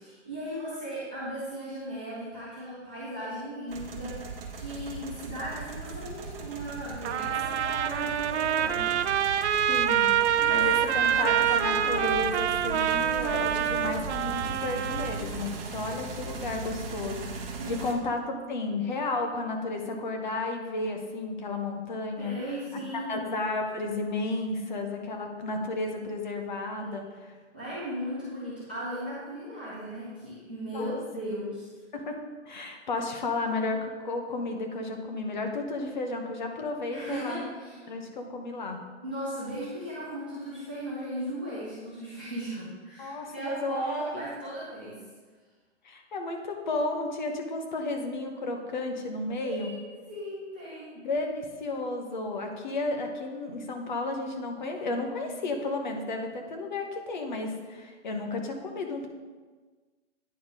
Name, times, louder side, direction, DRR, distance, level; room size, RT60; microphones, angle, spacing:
voice 1, 0.0-9.0 10.4-12.2 17.6-18.0 22.2-23.3 26.8-26.9 27.5-31.7 36.9-37.9 39.0-45.0 49.4-51.0, right 1 dB, 10° right, -11 dB, 0.4 m, -37 dB
sound 1, 3.7-17.9, right 4 dB, 55° right, 1.2 m, -39 dB
Trumpet, 7.0-15.2, right 9 dB, 70° right, 0.6 m, -26 dB
voice 2, 9.7-10.1 10.5-22.3 23.1-27.0 30.7-30.9 31.9-32.2 32.5-37.5 37.9-38.8 43.0-43.8 45.8-49.7 50.9-59.1, left 2 dB, 40° left, 4 dB, 0.9 m, -33 dB
9.4 x 4.0 x 4.7 m, 1.4 s
hypercardioid pair, 175°, 35 cm